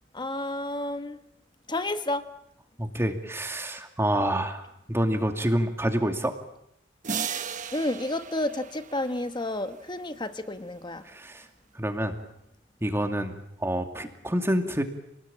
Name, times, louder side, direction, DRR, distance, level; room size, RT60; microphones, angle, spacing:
voice 1, 0.1-1.2 1.7-2.3 7.7-11.0, left 1 dB, 25° left, 10 dB, 1.3 m, -31 dB
voice 2, 2.8-6.3 11.1-11.5 11.7-12.2 12.8-14.8, right 1 dB, 15° right, 6 dB, 2.4 m, -27 dB
sound 1, 7.0-9.5, right 7 dB, 40° right, 1.2 m, -35 dB
29.0 x 19.5 x 8.8 m, 0.80 s
head